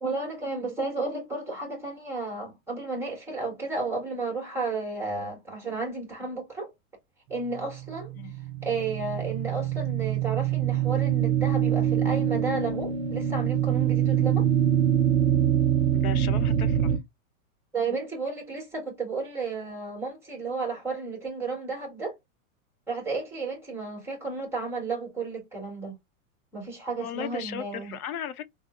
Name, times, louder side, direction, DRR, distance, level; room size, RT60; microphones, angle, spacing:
voice 1, 0.0-6.7 7.3-8.1 8.6-14.5 17.7-22.2 22.9-26.0 26.5-27.9, right 3 dB, 5° right, 1.1 m, -32 dB
sound 1, 7.6-17.0, right 10 dB, 50° right, 0.5 m, -25 dB
voice 2, 15.9-16.9 27.0-28.5, left 9 dB, 85° left, 0.6 m, -36 dB
3.7 x 2.0 x 2.3 m
hypercardioid pair, 145°, 43 cm